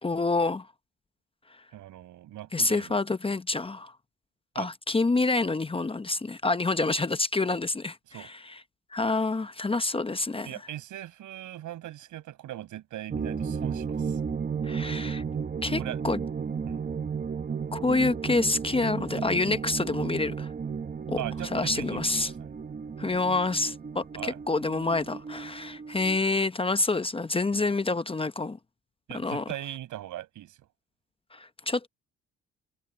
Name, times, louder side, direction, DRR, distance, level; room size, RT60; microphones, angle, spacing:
voice 1, 0.0-0.7 2.5-3.9 4.5-8.3 8.9-10.5 14.6-15.2 15.6-16.2 17.7-20.5 21.1-21.2 21.5-22.3 23.0-28.6 29.1-29.4 31.3-31.9, left 3 dB, 20° left, 0.8 m, -27 dB
voice 2, 1.7-3.0 4.5-4.7 8.1-8.3 10.4-14.2 15.7-16.0 16.7-16.9 21.2-22.5 24.1-24.4 27.5-27.8 29.1-30.7, right 13 dB, 80° right, 6.4 m, -40 dB
sound 1, 13.1-26.2, right 6 dB, 30° right, 1.0 m, -34 dB
cardioid pair, 90°, 30 cm